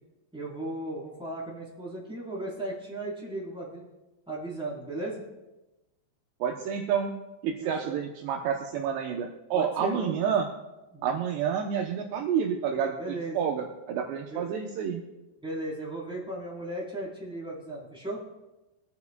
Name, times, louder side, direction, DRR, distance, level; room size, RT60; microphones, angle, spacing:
voice 1, 0.3-3.8 4.3-5.2 7.6-8.0 9.5-10.3 10.9-11.2 13.0-13.5 14.3-14.4 15.4-18.2, right 1 dB, ahead, -6 dB, 2.7 m, -36 dB
voice 2, 6.4-7.1 7.4-10.5 11.0-15.0, right 7 dB, 75° right, 2 dB, 2.8 m, -29 dB
24.0 x 9.5 x 2.3 m, 1.0 s
omnidirectional pair, 5.3 m